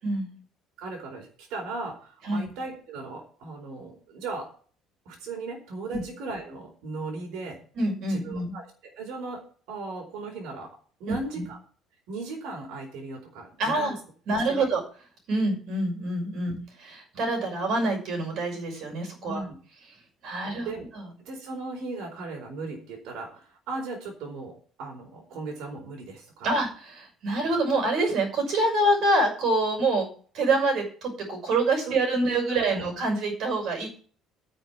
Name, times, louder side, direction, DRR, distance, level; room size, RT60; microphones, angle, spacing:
voice 1, 0.8-4.5 5.1-7.6 8.1-8.6 9.0-9.4 9.7-10.7 11.0-11.6 12.1-14.0 14.5-14.7 19.2-19.6 20.4-20.9 21.2-26.5 31.9-32.9, right 3 dB, 75° right, 1 dB, 4.4 m, -37 dB
voice 2, 7.7-8.5 11.1-11.4 13.6-13.9 14.3-14.8 15.3-19.4 20.2-20.7 20.9-21.1 26.4-30.1 30.3-33.9, right 2 dB, 50° right, 2 dB, 6.1 m, -26 dB
9.9 x 6.5 x 8.6 m, 0.42 s
cardioid pair, 170°, 0 cm